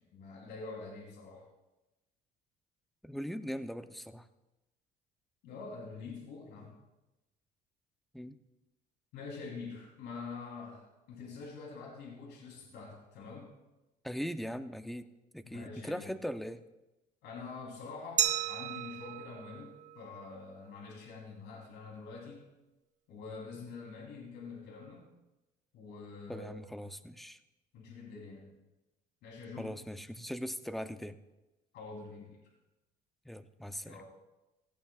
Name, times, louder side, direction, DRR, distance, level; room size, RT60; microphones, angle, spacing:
voice 1, 0.1-1.4 5.4-6.7 9.1-13.5 15.4-16.1 17.2-22.4 23.1-25.1 25.7-26.5 26.8-26.9 27.7-28.5 29.2-29.7 31.7-32.4 33.8-34.0, left 4 dB, 85° left, -1 dB, 3.6 m, -46 dB
voice 2, 3.0-4.3 8.1-8.4 14.0-15.0 15.3-16.6 26.3-27.4 29.6-31.2 33.3-34.0, equal, ahead, 10 dB, 0.6 m, -40 dB
Glass, 18.2-20.9, right 9 dB, 45° right, 0.7 m, -35 dB
17.5 x 15.5 x 2.5 m, 1.0 s
cardioid pair, 110°, 17 cm